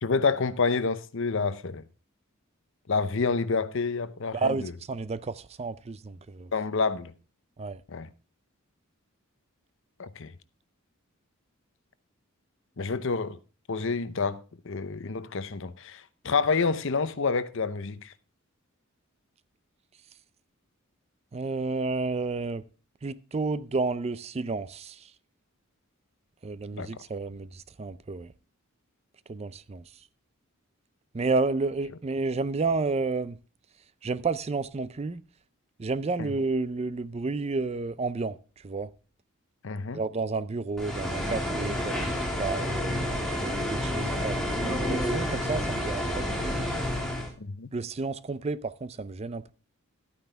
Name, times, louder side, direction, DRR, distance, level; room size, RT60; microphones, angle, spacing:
voice 1, 0.0-1.8 2.9-4.7 6.5-7.1 7.9-8.1 10.0-10.3 12.8-13.4 13.7-18.1 26.8-26.9 36.2-36.3 39.6-40.0 47.4-47.7, left 4 dB, 60° left, 0.7 m, -28 dB
voice 2, 4.3-6.5 7.6-7.8 21.3-22.6 23.0-25.1 26.4-28.3 29.3-29.8 31.1-33.4 34.0-35.2 35.8-38.4 38.6-38.9 39.9-43.0 43.4-46.6 47.7-49.5, right 3 dB, 30° right, 0.4 m, -31 dB
sound 1, 40.8-47.3, equal, ahead, 2.6 m, -29 dB
12.0 x 9.2 x 3.4 m
head